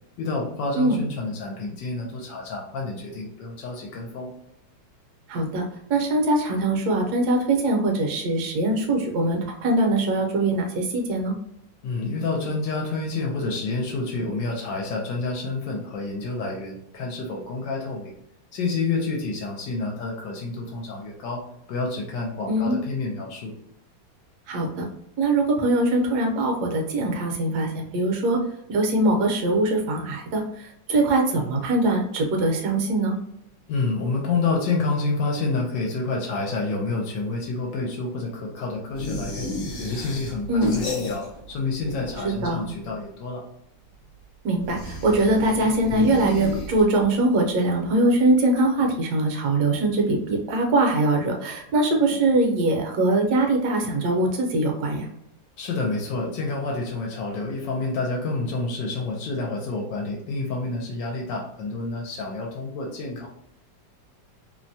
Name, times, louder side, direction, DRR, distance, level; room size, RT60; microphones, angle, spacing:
voice 1, 0.2-4.3 11.8-18.1 18.5-23.5 33.7-39.5 39.8-43.4 55.6-63.3, left 3 dB, 75° left, -1 dB, 1.2 m, -28 dB
voice 2, 5.3-5.6 5.9-11.3 22.5-22.8 24.5-24.9 25.2-28.4 28.7-33.2 40.5-40.7 42.2-42.7 44.4-55.1, right 2 dB, 65° right, 1 dB, 1.1 m, -22 dB
sound 1, 39.0-41.5 41.8-42.6 44.6-47.1, left 2 dB, 60° left, 0.8 m, -32 dB
3.1 x 2.1 x 2.6 m, 0.77 s
omnidirectional pair, 2.0 m